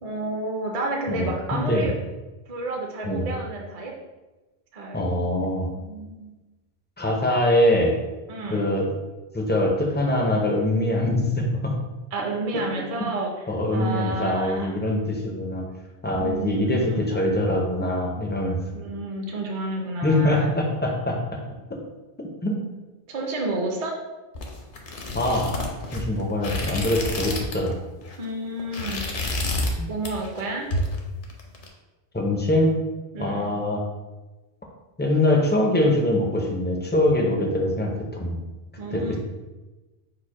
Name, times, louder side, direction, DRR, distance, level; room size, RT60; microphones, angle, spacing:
voice 1, 0.0-1.9 2.5-3.9 4.7-5.0 5.3-6.3 8.3-8.7 12.1-13.3 13.7-14.8 16.2-17.1 18.7-20.5 23.1-24.0 28.2-29.0 29.9-30.7 33.1-33.5 38.8-39.2, right 2 dB, 45° right, 1 dB, 0.5 m, -30 dB
voice 2, 1.1-1.9 3.1-3.3 4.9-5.7 7.0-7.9 8.5-8.9 9.3-11.7 12.5-12.6 13.5-15.6 16.0-18.6 20.0-21.4 22.4-22.6 25.1-25.5 25.9-27.8 29.8-29.9 32.1-32.7 33.2-33.8 35.0-38.4 38.9-39.2, left 1 dB, 15° left, 0 dB, 0.4 m, -23 dB
sound 1, 24.3-27.7 28.0-28.2 28.6-29.8 30.0-30.4 30.7-31.7, left 1 dB, 55° left, 0.8 m, -29 dB
4.8 x 2.1 x 4.6 m, 1.1 s
omnidirectional pair, 1.1 m